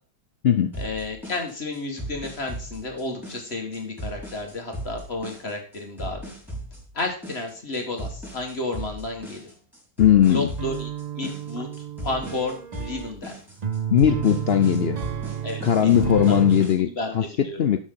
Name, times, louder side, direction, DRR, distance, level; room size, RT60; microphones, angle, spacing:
sound 1, 0.7-16.7, equal, ahead, 4.8 m, -38 dB
voice 1, 0.8-6.3 6.9-9.4 10.3-10.9 11.2-11.7 12.0-13.3 15.4-16.4 16.8-17.6, left 2 dB, 40° left, 3 dB, 1.8 m, -32 dB
voice 2, 10.0-10.5 13.9-15.0 15.6-17.2 17.6-17.8, left 10 dB, 80° left, 9 dB, 0.5 m, -19 dB
sound 2, 10.6-16.7, right 9 dB, 85° right, 0.3 m, -31 dB
12.0 x 6.4 x 3.8 m, 0.38 s
omnidirectional pair, 1.8 m